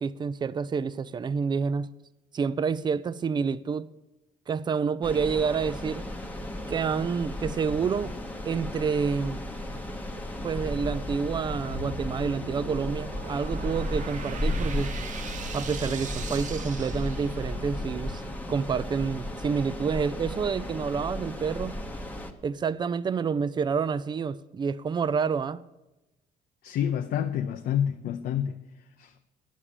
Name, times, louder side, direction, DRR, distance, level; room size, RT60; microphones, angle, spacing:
voice 1, 0.0-1.9 2.3-3.9 4.5-6.1 6.7-8.1 8.4-9.4 10.4-14.9 15.5-18.2 18.5-21.8 22.4-25.6, right 6 dB, 25° right, 0.4 m, -28 dB
sound 1, 5.0-22.3, left 1 dB, 10° left, 0.9 m, -34 dB
sound 2, 11.5-17.8, right 4 dB, 50° right, 1.0 m, -41 dB
voice 2, 26.6-28.6 29.0-29.1, left 9 dB, 65° left, 0.6 m, -28 dB
9.8 x 7.4 x 6.7 m
cardioid pair, 110°, 17 cm